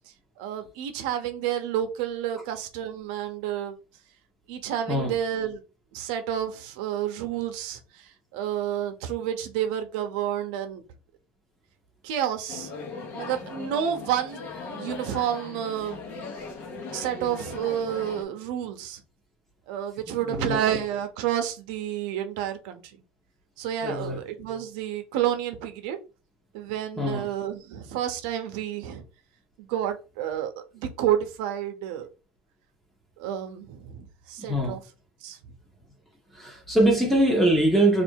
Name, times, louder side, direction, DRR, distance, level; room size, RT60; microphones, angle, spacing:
voice 1, 0.4-3.8 4.5-5.6 5.9-7.8 8.3-10.8 12.0-12.7 13.1-14.5 14.7-16.0 16.9-19.0 19.7-22.8 23.6-26.0 26.5-29.0 29.6-32.1 33.2-34.8 35.2-35.4, right 10 dB, 70° right, 0.7 m, -30 dB
sound 1, 12.5-18.2, left 3 dB, 35° left, 0.9 m, -39 dB
voice 2, 20.1-20.6 23.8-24.2 27.0-27.3 34.4-34.8 36.3-38.0, right 1 dB, 5° left, 0.9 m, -23 dB
3.3 x 2.5 x 4.5 m
cardioid pair, 165°, 4 cm